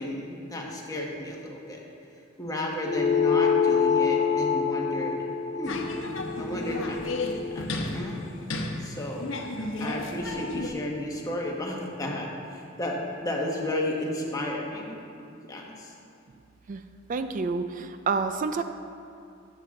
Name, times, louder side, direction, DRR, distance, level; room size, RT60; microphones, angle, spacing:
voice 1, 0.0-1.8 2.4-5.2 5.6-5.8 6.4-8.1 8.8-9.3 9.8-15.0 15.5-15.9, left 1 dB, 20° left, -2 dB, 1.4 m, -33 dB
sound 1, 2.9-7.7, left 6 dB, 35° left, 0.3 m, -26 dB
sound 2, 5.6-10.7, left 2 dB, 85° left, 0.9 m, -34 dB
voice 2, 17.1-18.6, right 4 dB, 40° right, 9 dB, 0.4 m, -28 dB
14.0 x 7.5 x 3.8 m, 2.5 s
head